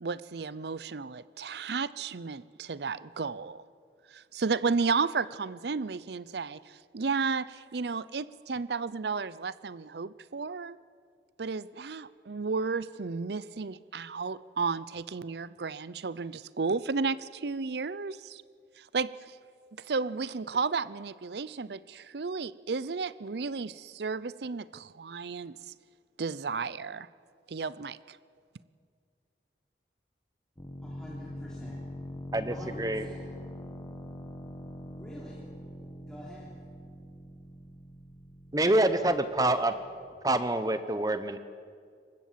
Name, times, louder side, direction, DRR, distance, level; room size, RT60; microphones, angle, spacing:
voice 1, 0.0-3.6 4.1-10.8 11.4-18.4 18.8-19.4 19.8-25.6 26.2-27.1 27.5-28.2, right 4 dB, 70° right, 18 dB, 0.6 m, -33 dB
sound 1, 30.6-40.2, left 1 dB, 20° left, 1.7 m, -44 dB
voice 2, 30.8-31.8 32.5-33.2 34.9-35.4 36.1-36.6, equal, 5° left, -6 dB, 3.4 m, -47 dB
voice 3, 32.3-33.1 38.5-39.7 40.2-41.4, right 1 dB, 20° right, 11 dB, 0.9 m, -26 dB
23.5 x 20.0 x 7.5 m, 2.2 s
head